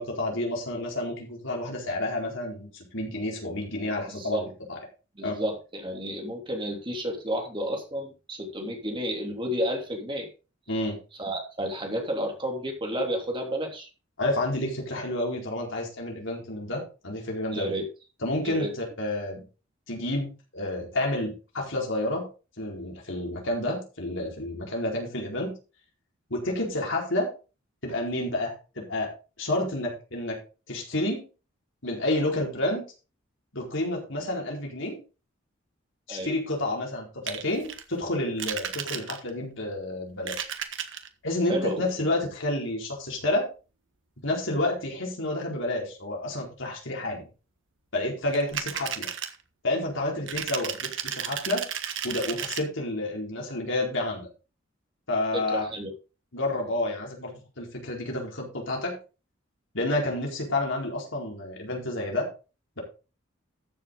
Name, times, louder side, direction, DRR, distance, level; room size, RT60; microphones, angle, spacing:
voice 1, 0.0-4.8 5.2-5.4 10.7-11.0 14.2-17.7 18.2-19.4 19.9-22.2 22.6-25.6 26.3-27.3 27.8-29.1 29.4-30.4 30.7-31.2 31.8-32.8 33.5-35.0 36.1-40.5 41.2-43.5 44.2-47.3 47.9-49.1 49.6-51.6 52.0-54.3 55.1-55.6 56.3-59.0 59.7-62.3, left 1 dB, 65° left, -1 dB, 4.6 m, -30 dB
voice 2, 4.1-4.5 5.1-10.3 11.2-13.9 17.5-17.8 18.4-18.7 36.1-36.3 41.5-41.8 55.3-55.9, equal, 25° right, 2 dB, 3.2 m, -31 dB
sound 1, 37.3-37.8 38.4-39.4 40.1-41.1 48.3-49.3 50.3-52.6, right 9 dB, 65° right, 1.5 m, -33 dB
14.0 x 7.5 x 3.9 m, 0.32 s
head